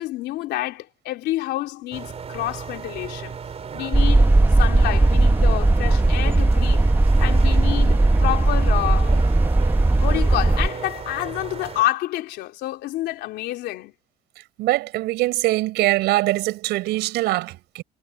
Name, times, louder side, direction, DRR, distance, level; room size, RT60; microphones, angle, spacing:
voice 1, 0.0-3.4 3.7-6.9 7.2-9.2 10.0-13.9, left 16 dB, 80° left, 3.3 m, -28 dB
sound 1, 1.9-11.8, right 6 dB, 40° right, 3.8 m, -35 dB
sound 2, 3.9-10.7, right 2 dB, 10° right, 1.3 m, -17 dB
voice 2, 14.6-17.8, right 18 dB, 90° right, 5.3 m, -22 dB
cardioid pair, 110°, 17 cm